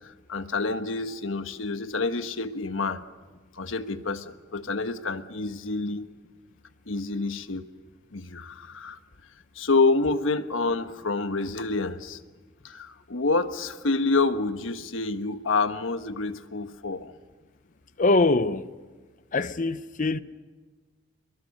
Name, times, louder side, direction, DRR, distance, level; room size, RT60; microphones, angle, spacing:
voice 1, 0.0-3.0 3.5-6.1 6.9-7.7 8.1-9.0 9.5-12.2 12.6-17.1, left 3 dB, 85° left, 1.3 m, -28 dB
voice 2, 18.0-18.7 19.3-20.2, left 2 dB, 40° left, 0.8 m, -23 dB
29.5 x 22.0 x 6.6 m
head